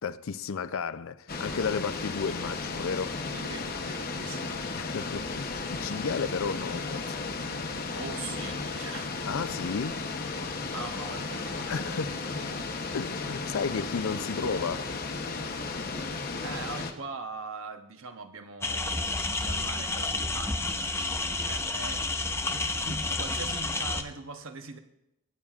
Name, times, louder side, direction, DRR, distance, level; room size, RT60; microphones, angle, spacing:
voice 1, 0.0-3.2 4.7-7.3 9.3-10.0 11.7-12.2 12.9-14.9, left 5 dB, 65° left, 0.5 m, -33 dB
sound 1, 1.3-16.9, left 3 dB, 40° left, 0.9 m, -34 dB
voice 2, 3.3-4.6 7.9-9.2 10.7-12.2 12.4-12.7 16.4-24.8, right 4 dB, 65° right, 0.9 m, -42 dB
sound 2, 18.6-24.0, left 3 dB, 10° left, 0.4 m, -30 dB
24.0 x 8.8 x 2.4 m
head